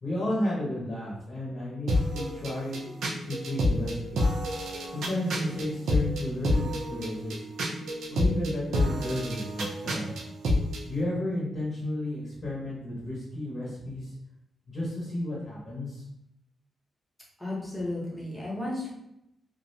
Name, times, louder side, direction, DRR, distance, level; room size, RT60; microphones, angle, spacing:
voice 1, 0.0-2.8 3.2-4.2 4.9-7.4 8.1-10.1 10.8-14.1 14.7-16.0, left 1 dB, 35° left, -6 dB, 0.8 m, -32 dB
sound 1, 1.9-10.8, left 1 dB, 85° right, 0.4 m, -29 dB
voice 2, 17.4-18.9, left 1 dB, 5° left, -6 dB, 0.8 m, -33 dB
2.4 x 2.1 x 2.6 m, 0.82 s
wide cardioid pair, 135°, 0 cm